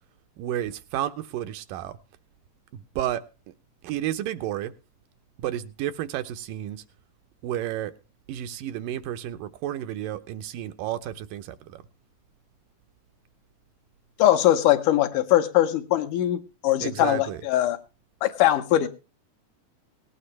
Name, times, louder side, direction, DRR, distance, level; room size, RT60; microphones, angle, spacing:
voice 1, 0.4-2.0 2.7-3.2 3.8-4.7 5.4-6.8 7.4-7.9 8.3-11.8 16.8-17.4, right 12 dB, 80° right, 2.5 m, -31 dB
voice 2, 14.2-17.8 18.2-18.9, left 13 dB, 75° left, 2.4 m, -21 dB
18.5 x 9.9 x 3.3 m
omnidirectional pair, 3.9 m